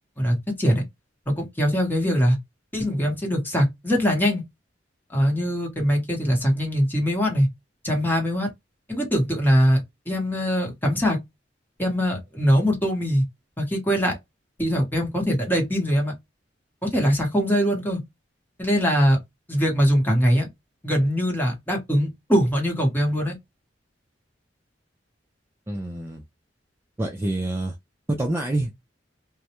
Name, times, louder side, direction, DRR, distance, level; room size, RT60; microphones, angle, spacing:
voice 1, 0.2-0.8 1.3-2.4 2.7-4.4 5.1-7.5 7.8-8.5 8.9-11.2 11.8-13.2 13.6-14.1 14.6-16.1 16.8-18.0 18.6-19.2 19.5-20.5 20.8-23.3, equal, 10° left, 0.9 m, -22 dB
voice 2, 25.7-26.2 27.0-27.7 28.1-28.7, right 1 dB, 15° right, 0.4 m, -27 dB
2.3 x 2.0 x 2.8 m
head